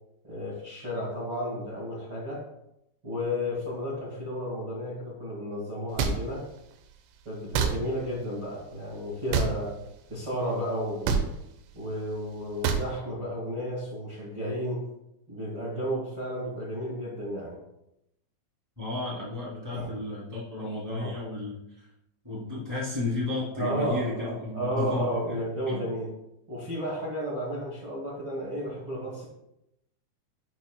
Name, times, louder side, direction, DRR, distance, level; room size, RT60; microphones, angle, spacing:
voice 1, 0.2-2.4 3.0-6.4 7.2-9.7 10.1-11.2 11.7-14.8 15.3-17.6 19.7-19.9 20.9-21.1 23.6-26.1 26.5-29.2, equal, 50° right, -3 dB, 1.3 m, -32 dB
sound 1, 6.0-6.2 7.5-7.7 9.3-9.5 11.0-11.2 12.6-12.8, right 6 dB, 80° right, 3.2 m, -24 dB
voice 2, 18.8-21.9 22.2-25.3 25.7-25.9, left 3 dB, 15° right, -8 dB, 0.6 m, -33 dB
11.0 x 6.2 x 2.3 m, 0.83 s
omnidirectional pair, 5.6 m